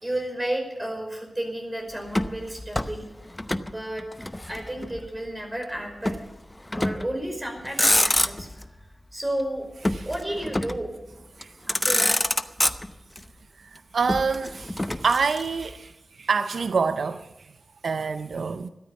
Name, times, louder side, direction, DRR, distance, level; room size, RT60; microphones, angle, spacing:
voice 1, 0.0-3.1 3.6-4.0 4.5-6.2 6.7-8.5 9.1-9.7 10.0-10.9 11.7-12.2, right 1 dB, 20° right, 5.2 m, -32 dB
Motor vehicle (road), 2.1-3.7 4.0-5.1 6.0-6.3 6.7-7.2 7.6-8.6 9.8-10.9 11.4-11.5 11.7-13.2 14.1-15.7, left 1 dB, 15° left, 0.8 m, -26 dB
voice 2, 13.6-17.3 17.8-18.7, right 5 dB, 80° right, 0.5 m, -26 dB
14.0 x 12.5 x 7.2 m
wide cardioid pair, 70°, 0 cm